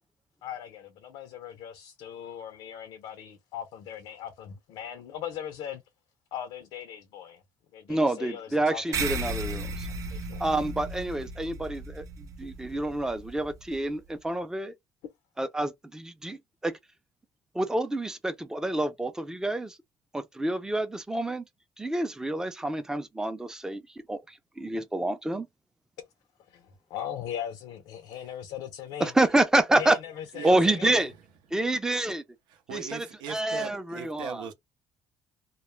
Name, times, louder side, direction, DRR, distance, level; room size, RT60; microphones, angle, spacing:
voice 1, 0.4-5.8 6.3-7.4 7.7-8.8 9.5-9.8 10.1-10.5 26.5-29.1 29.8-31.0, left 10 dB, 80° left, 0.5 m, -39 dB
voice 2, 7.9-9.9 10.4-14.7 15.4-16.8 17.5-19.8 20.1-21.4 21.8-25.5 29.0-30.0 30.4-31.1 31.5-32.2 32.7-34.5, right 2 dB, 10° right, 0.5 m, -28 dB
sound 1, 8.9-13.8, right 2 dB, 45° right, 0.7 m, -35 dB
voice 3, 30.3-30.7 32.5-34.5, right 7 dB, 80° right, 0.6 m, -39 dB
2.2 x 2.0 x 3.1 m
cardioid pair, 115°, 8 cm